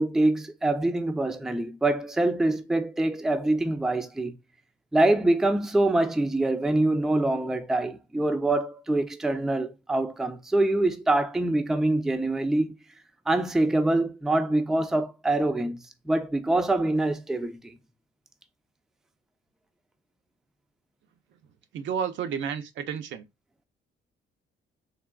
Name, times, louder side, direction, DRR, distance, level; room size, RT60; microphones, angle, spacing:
voice 1, 0.0-4.4 4.9-12.7 13.3-15.8 16.1-17.7, right 2 dB, ahead, 0.4 m, -25 dB
voice 2, 21.7-23.3, right 7 dB, 70° right, 0.5 m, -31 dB
3.5 x 2.3 x 2.2 m
cardioid pair, 90°, 20 cm